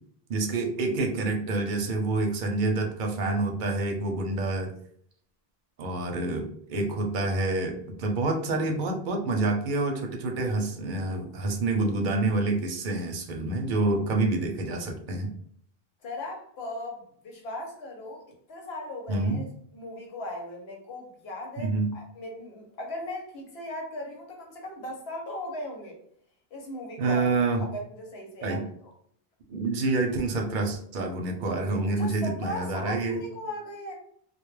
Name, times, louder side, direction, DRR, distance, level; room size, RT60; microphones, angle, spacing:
voice 1, 0.3-4.7 5.8-15.3 19.1-19.4 21.6-21.9 27.0-27.7 28.4-28.6 29.5-33.2, right 2 dB, 60° right, 3 dB, 0.7 m, -27 dB
voice 2, 16.0-18.2 18.5-19.5 19.7-26.0 26.5-27.4 27.7-28.6 32.0-33.9, left 1 dB, 90° left, 1 dB, 1.0 m, -38 dB
2.2 x 2.1 x 3.1 m, 0.64 s
omnidirectional pair, 1.0 m